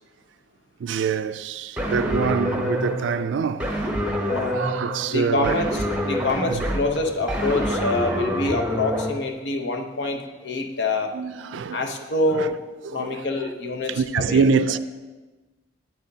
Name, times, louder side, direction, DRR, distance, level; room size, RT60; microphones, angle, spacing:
voice 1, 0.8-3.7 4.5-5.6 6.5-6.7 11.1-11.9 12.3-12.5 12.9-13.2 13.9-14.8, right 5 dB, 80° right, 0.4 m, -25 dB
sound 1, 1.8-9.1, equal, 5° right, 0.8 m, -27 dB
voice 2, 4.2-4.6 5.1-11.1 11.7-12.5 12.9-13.9 14.3-14.4, left 2 dB, 70° left, 0.8 m, -26 dB
8.4 x 8.4 x 2.8 m
head